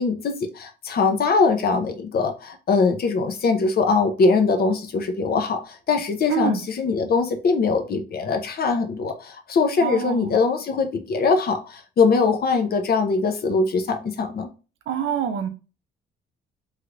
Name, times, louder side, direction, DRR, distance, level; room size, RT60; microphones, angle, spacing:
voice 1, 0.0-14.5, left 4 dB, 50° left, 0.7 m, -22 dB
voice 2, 6.3-6.6 9.8-10.4 14.9-15.5, right 8 dB, 75° right, 0.6 m, -26 dB
3.2 x 2.4 x 3.1 m
cardioid pair, 90°, 20 cm